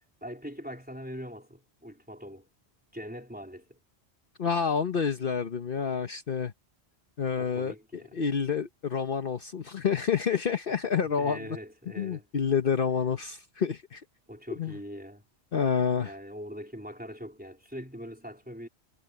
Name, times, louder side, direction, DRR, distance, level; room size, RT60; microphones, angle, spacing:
voice 1, 0.2-2.5 2.9-3.8 7.4-8.2 11.0-12.3 14.3-15.2 16.0-18.7, equal, 10° right, 3.6 m, -42 dB
voice 2, 4.4-6.5 7.2-7.7 8.1-11.6 12.0-14.0 14.6-14.7 15.5-16.1, left 6 dB, 55° left, 1.1 m, -28 dB
omnidirectional pair, 1.1 m